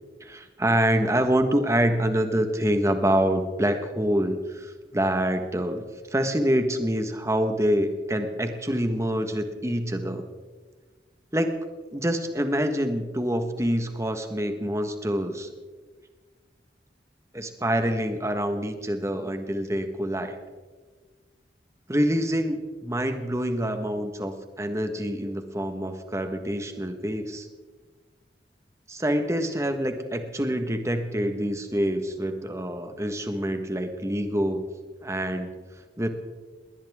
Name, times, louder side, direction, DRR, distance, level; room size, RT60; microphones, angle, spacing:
voice 1, 0.2-5.8 6.1-10.2 11.3-11.6 11.9-15.5 17.3-20.4 21.9-27.5 28.9-34.6 35.0-35.5 36.0-36.1, equal, 15° right, 7 dB, 1.4 m, -26 dB
20.5 x 19.0 x 3.6 m, 1.4 s
head